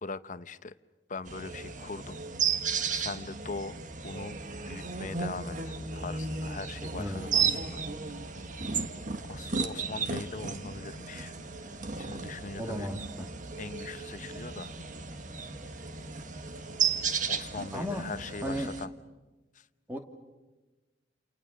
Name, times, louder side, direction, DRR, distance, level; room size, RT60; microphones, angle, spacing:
voice 1, 0.0-0.8 1.1-2.2 2.9-3.8 4.0-4.4 4.7-7.8 9.3-11.3 12.0-12.9 13.6-14.7 17.3-18.9 19.5-19.7, left 3 dB, 45° left, 13 dB, 0.8 m, -41 dB
sound 1, 1.3-18.9, right 6 dB, 45° right, 1.4 m, -34 dB
voice 2, 7.0-7.6 12.6-13.3 17.7-18.1 18.4-18.7 19.9-20.0, equal, 10° right, 3 dB, 2.6 m, -35 dB
29.5 x 29.0 x 6.5 m, 1.2 s
head